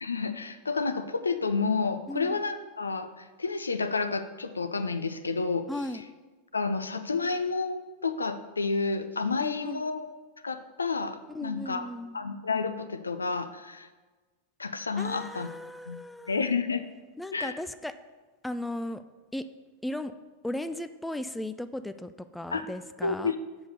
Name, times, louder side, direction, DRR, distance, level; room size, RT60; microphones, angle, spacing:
voice 1, 0.0-5.7 6.5-10.1 10.4-11.8 12.1-13.9 14.6-15.5 15.9-16.0 16.3-16.8 17.3-17.6 22.5-22.6 23.0-23.4, left 4 dB, 75° left, 10 dB, 0.5 m, -30 dB
voice 2, 2.1-2.4 5.7-6.0 9.4-9.8 11.3-12.2 15.0-16.5 17.2-18.0 18.4-19.0 19.3-19.5 19.8-20.1 20.4-23.3, left 1 dB, 5° left, 11 dB, 0.3 m, -36 dB
7.1 x 5.2 x 6.5 m, 1.3 s
figure-of-eight pair, 90°, 0 cm